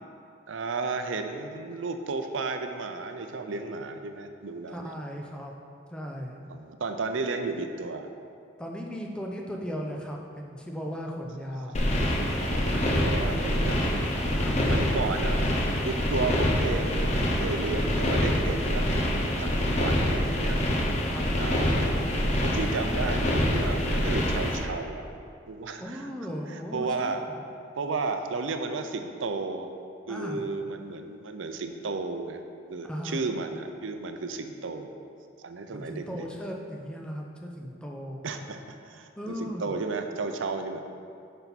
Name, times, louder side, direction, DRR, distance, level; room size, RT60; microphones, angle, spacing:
voice 1, 0.5-4.9 6.5-8.1 11.5-11.8 12.4-13.9 14.6-15.4 15.8-18.9 19.2-20.6 21.4-22.0 22.4-25.0 25.5-26.1 26.5-27.2 27.8-29.7 30.1-32.4 32.7-34.9 35.4-36.3 38.2-40.8, right 3 dB, 85° right, 7 dB, 0.6 m, -33 dB
voice 2, 4.7-5.5 5.9-6.4 8.6-11.8 14.3-14.9 21.1-21.3 25.8-27.4 30.1-30.5 32.8-33.2 35.7-38.2 39.2-39.7, equal, 5° left, -1 dB, 0.6 m, -37 dB
sound 1, 11.7-24.6, equal, 35° left, 0.9 m, -26 dB
8.8 x 5.6 x 4.1 m, 2.4 s
head